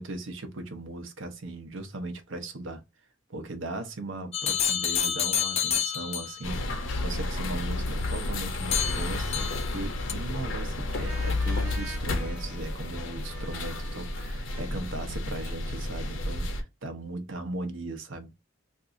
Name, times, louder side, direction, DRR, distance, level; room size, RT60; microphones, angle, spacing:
voice 1, 0.0-2.8 3.3-18.3, right 2 dB, 70° right, 0.8 m, -38 dB
sound 1, 4.3-6.5 8.7-9.8 10.1-10.2, left 8 dB, 30° left, 0.3 m, -28 dB
sound 2, 6.4-16.6, left 2 dB, 70° left, 0.7 m, -31 dB
sound 3, 11.0-15.7, right 3 dB, 5° right, 0.7 m, -47 dB
2.6 x 2.4 x 3.7 m
head